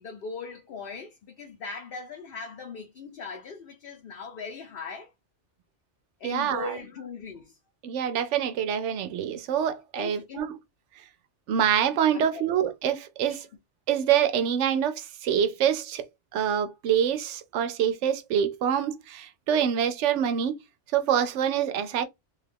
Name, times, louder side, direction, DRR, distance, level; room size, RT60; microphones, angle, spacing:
voice 1, 0.0-5.1 6.2-7.6 10.0-10.5 12.1-12.5 13.3-13.5, left 4 dB, 60° left, 0.8 m, -39 dB
voice 2, 6.2-6.7 7.8-10.6 11.5-13.5 13.9-16.1 16.3-20.5 20.9-22.0, right 9 dB, 80° right, 0.9 m, -26 dB
3.2 x 2.3 x 3.3 m
omnidirectional pair, 1.2 m